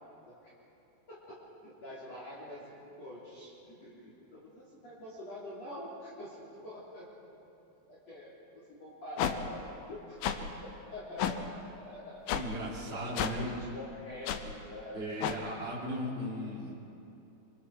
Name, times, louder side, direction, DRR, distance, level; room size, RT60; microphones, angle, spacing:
voice 1, 1.1-6.4 6.6-7.1 7.4-7.5 7.9-10.2 10.6-15.0, left 1 dB, 40° left, -7 dB, 4.0 m, -46 dB
sound 1, 9.2-9.3 10.2-10.4 11.2-11.3 12.3-12.4 13.2-13.3 14.3-14.4 15.2-15.4, left 10 dB, 70° left, 2.6 m, -30 dB
voice 2, 12.3-13.5 14.9-16.7, equal, 15° right, -6 dB, 4.2 m, -37 dB
26.5 x 25.0 x 4.8 m, 2.8 s
omnidirectional pair, 5.0 m